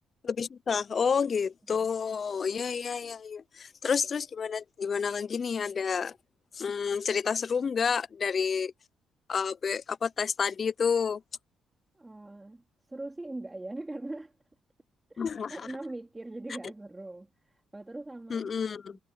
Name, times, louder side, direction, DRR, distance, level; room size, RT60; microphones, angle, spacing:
voice 1, 0.2-6.2 6.5-8.7 9.3-11.2 15.2-15.6 18.3-19.0, left 6 dB, 45° left, 0.4 m, -29 dB
voice 2, 11.9-12.6 12.9-14.4 15.1-18.5, right 2 dB, 15° right, 3.8 m, -41 dB
cardioid pair, 90°, 0 cm